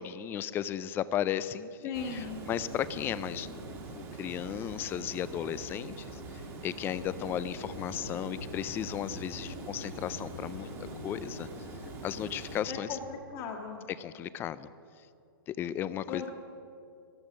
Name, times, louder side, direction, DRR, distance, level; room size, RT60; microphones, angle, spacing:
voice 1, 0.0-1.7 2.1-6.2 6.6-10.7 11.0-11.5 12.0-12.9 14.0-14.7 15.5-16.3, left 10 dB, 20° left, 16 dB, 0.4 m, -35 dB
voice 2, 1.8-2.4 12.7-13.8 16.1-16.3, left 6 dB, 40° left, -1 dB, 1.7 m, -37 dB
Water, 1.9-12.6, right 3 dB, 20° right, 1.7 m, -44 dB
sound 1, 2.7-5.0 5.3-5.4 6.9-13.2, left 3 dB, 60° left, 2.5 m, -47 dB
14.0 x 12.0 x 6.2 m, 2.5 s
hypercardioid pair, 140°, 12 cm